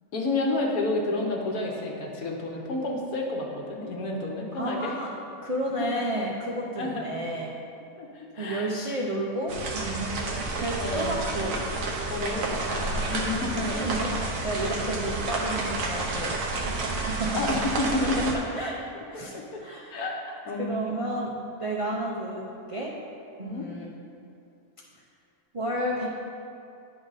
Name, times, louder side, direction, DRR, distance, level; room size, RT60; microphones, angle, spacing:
voice 1, 0.1-5.0 5.8-6.0 6.8-7.1 8.0-8.7 10.2-10.4 10.8-11.2 12.1-13.8 17.3-18.3 19.3-19.6 19.9-20.9 23.4-23.7, left 2 dB, 80° left, 0 dB, 1.4 m, -30 dB
voice 2, 4.5-5.1 5.4-7.6 8.4-11.6 13.7-14.1 14.4-17.4 18.5-18.7 19.1-19.3 19.6-20.0 20.6-22.9 23.4-23.9 25.5-26.1, right 1 dB, 50° right, -4 dB, 0.3 m, -31 dB
sound 1, 9.5-18.4, right 3 dB, 70° right, 1.2 m, -30 dB
10.0 x 3.9 x 4.0 m, 2.6 s
omnidirectional pair, 1.5 m